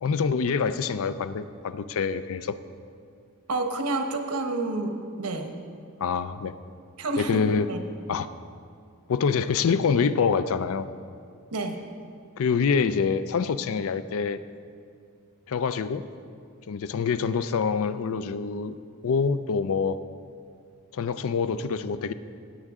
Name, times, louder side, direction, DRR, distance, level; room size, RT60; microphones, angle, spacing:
voice 1, 0.0-2.6 6.0-6.5 7.2-7.7 8.1-8.3 9.1-10.9 12.4-14.4 15.5-16.0 16.7-18.8 19.0-20.0 20.9-22.1, left 5 dB, 65° left, 13 dB, 0.4 m, -25 dB
voice 2, 3.5-5.5 7.0-7.4 7.7-7.8 11.5-11.8, right 2 dB, 90° right, 5 dB, 1.0 m, -29 dB
17.5 x 7.5 x 3.6 m, 2.3 s
head